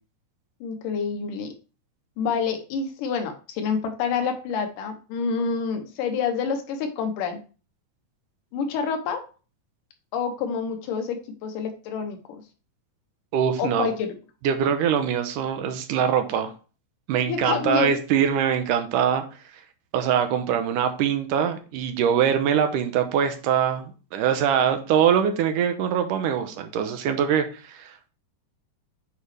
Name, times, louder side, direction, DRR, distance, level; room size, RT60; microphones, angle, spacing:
voice 1, 0.6-1.5 2.2-7.4 8.5-9.2 10.1-12.4 13.6-14.1 17.3-18.0, left 6 dB, 90° left, 6 dB, 2.7 m, -28 dB
voice 2, 13.3-13.9 14.4-16.5 17.1-19.2 19.9-27.9, right 8 dB, 85° right, 7 dB, 2.4 m, -23 dB
8.6 x 4.7 x 3.4 m, 0.35 s
omnidirectional pair, 3.7 m